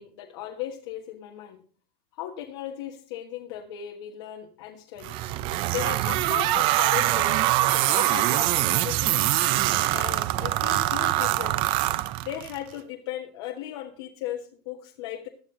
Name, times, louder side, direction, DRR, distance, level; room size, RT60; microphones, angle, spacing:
voice 1, 0.0-1.6 2.1-5.2 5.7-9.3 9.9-11.7 12.2-15.3, left 11 dB, 75° left, 1 dB, 1.5 m, -37 dB
sound 1, 5.0-12.6, right 15 dB, 40° right, 0.6 m, -24 dB
16.0 x 10.5 x 3.8 m, 0.42 s
supercardioid pair, 170°, 14 cm